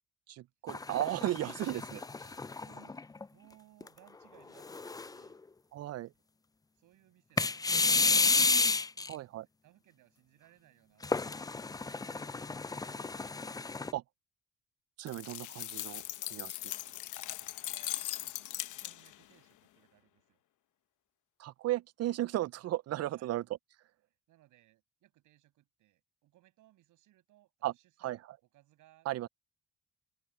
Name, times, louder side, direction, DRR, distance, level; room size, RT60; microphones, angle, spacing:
voice 1, 0.3-2.3 5.7-6.1 9.1-9.4 13.9-14.0 15.0-16.0 16.3-16.6 21.4-23.4 27.6-27.7 28.0-28.4 29.1-29.3, right 14 dB, 55° right, 0.5 m, -35 dB
sound 1, 0.7-3.2 3.8-3.9 4.6-5.3 7.4-9.1 11.0-13.9, left 4 dB, 15° left, 0.4 m, -31 dB
voice 2, 2.4-5.4 6.8-8.2 8.7-9.2 9.6-11.6 17.7-20.4 23.1-23.3 24.3-27.5 27.8-28.2 28.5-29.1, right 15 dB, 90° right, 6.8 m, -65 dB
sound 2, 15.1-19.2, left 14 dB, 80° left, 1.0 m, -40 dB
cardioid pair, 90°, 30 cm